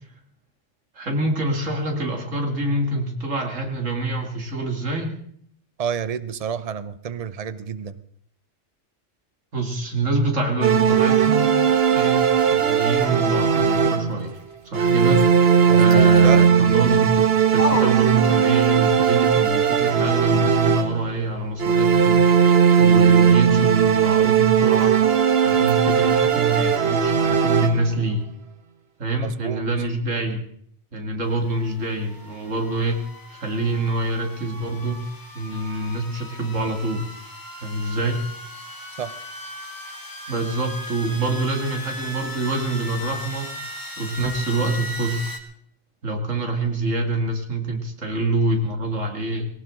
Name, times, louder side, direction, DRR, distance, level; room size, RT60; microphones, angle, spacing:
voice 1, 0.9-5.2 9.5-11.6 11.9-14.4 14.6-15.3 15.7-22.5 22.8-24.9 25.4-28.3 29.0-30.4 30.9-33.1 33.3-35.1 35.3-37.1 37.6-38.2 40.3-43.5 44.0-45.2 46.0-49.5, right 2 dB, 90° right, 3 dB, 2.8 m, -25 dB
voice 2, 5.8-8.0 15.7-16.5 29.2-29.6 39.0-39.2, right 8 dB, 35° right, 13 dB, 0.7 m, -29 dB
sound 1, 10.6-14.3 14.7-21.2 21.6-28.0, right 7 dB, 55° right, 1.2 m, -18 dB
sound 2, 11.6-18.8 19.1-26.3, left 2 dB, 55° left, 3.7 m, -39 dB
sound 3, 31.2-45.4, left 1 dB, 15° left, 1.8 m, -38 dB
19.0 x 18.0 x 3.8 m, 0.66 s
omnidirectional pair, 1.3 m